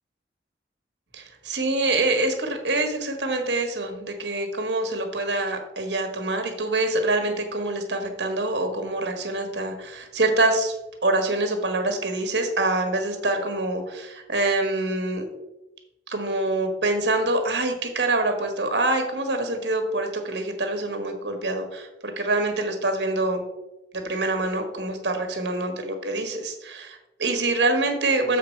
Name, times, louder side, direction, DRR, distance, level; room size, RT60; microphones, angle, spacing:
voice 1, 1.1-15.2 16.1-23.4 24.0-28.4, right 2 dB, 70° right, 5 dB, 1.5 m, -25 dB
7.7 x 5.0 x 4.5 m, 0.95 s
head